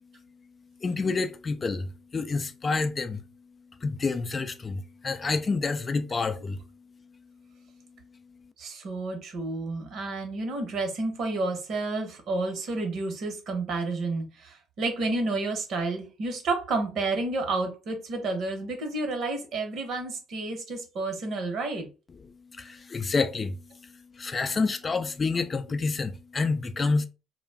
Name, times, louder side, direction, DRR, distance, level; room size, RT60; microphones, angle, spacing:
voice 1, 0.8-3.2 3.8-6.6 22.5-23.6 24.2-27.1, left 4 dB, 35° left, 0.4 m, -28 dB
voice 2, 8.6-21.9 26.8-26.9, right 3 dB, 60° right, 0.9 m, -30 dB
2.2 x 2.2 x 3.4 m
hypercardioid pair, 60°, 0 cm